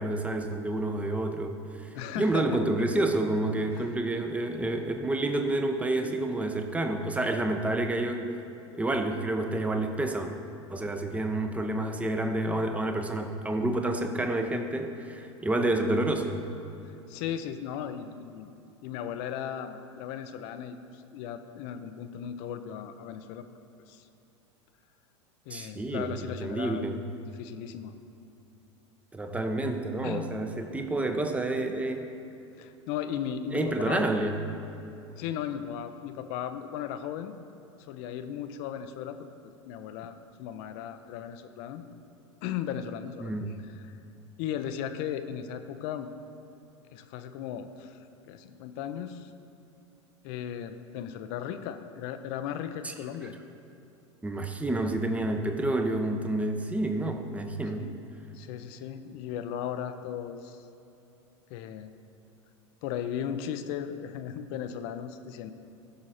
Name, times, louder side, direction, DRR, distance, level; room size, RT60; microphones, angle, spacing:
voice 1, 0.0-1.9 2.2-8.3 8.7-10.3 10.7-16.4 25.5-26.1 26.4-27.0 29.1-32.1 33.5-34.4 43.2-43.5 52.8-52.9 54.2-57.8, right 2 dB, 10° right, 5 dB, 0.9 m, -29 dB
voice 2, 1.9-2.6 3.7-3.9 16.8-18.5 18.8-23.5 23.9-24.1 25.5-26.8 27.3-27.9 30.0-30.3 32.6-34.1 35.2-37.3 37.9-41.8 42.4-43.3 43.6-44.0 44.4-46.1 46.9-48.0 48.3-49.3 50.2-53.4 57.7-57.9 58.3-60.7 61.5-61.9 62.8-65.5, left 9 dB, 55° left, 9 dB, 0.8 m, -36 dB
15.5 x 6.2 x 4.3 m, 2.9 s
hypercardioid pair, 100°, 16 cm